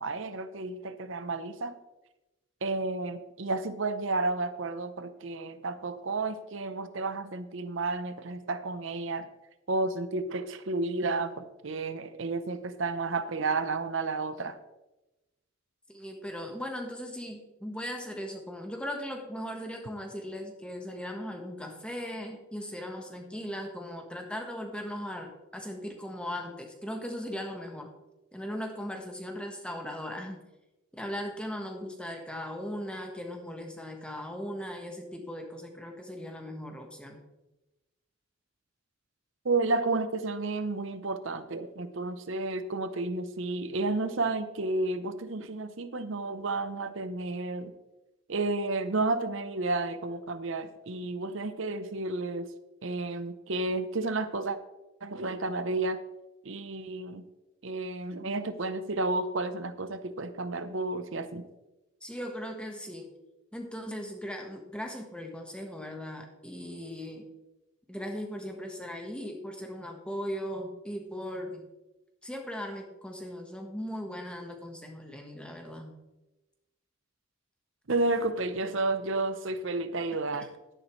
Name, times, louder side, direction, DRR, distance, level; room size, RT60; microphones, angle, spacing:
voice 1, 0.0-1.8 2.6-9.3 9.7-14.6 39.4-47.7 48.3-52.5 52.8-54.6 55.0-56.0 56.4-57.3 57.6-61.4 77.9-80.5, right 3 dB, 60° right, 11 dB, 0.8 m, -31 dB
voice 2, 15.9-27.9 28.3-30.4 30.9-37.2 62.0-63.1 63.5-67.3 67.9-71.7 72.2-75.9, equal, 5° left, 2 dB, 1.3 m, -38 dB
12.0 x 10.5 x 3.2 m, 1.0 s
head